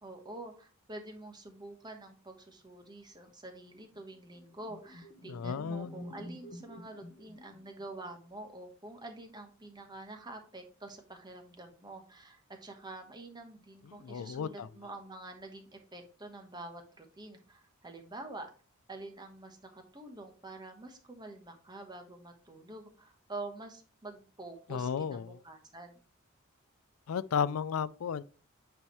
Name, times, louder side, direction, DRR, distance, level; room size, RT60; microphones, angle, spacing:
voice 1, 0.0-18.5 18.9-26.0, right 2 dB, 20° right, 1.2 m, -47 dB
sound 1, 4.1-8.1, equal, 40° left, 0.9 m, -48 dB
voice 2, 5.3-6.0 14.0-14.7 24.7-25.4 27.1-28.2, left 7 dB, 85° left, 0.4 m, -33 dB
8.7 x 4.6 x 3.1 m
head